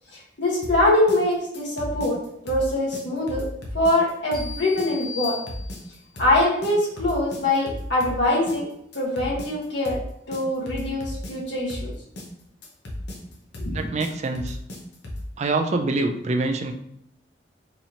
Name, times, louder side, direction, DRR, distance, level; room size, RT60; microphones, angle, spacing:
voice 1, 0.4-3.5 3.7-5.4 6.2-8.7 8.9-10.0 10.3-11.9 13.6-13.7, left 1 dB, 85° left, -4 dB, 1.4 m, -23 dB
sound 1, 0.6-15.3, left 1 dB, 65° left, 0.8 m, -35 dB
sound 2, 4.3-6.2, left 6 dB, 5° left, 1.1 m, -37 dB
voice 2, 13.7-14.6 15.4-16.7, right 2 dB, 40° right, 6 dB, 0.3 m, -25 dB
4.2 x 2.9 x 2.8 m, 0.73 s
head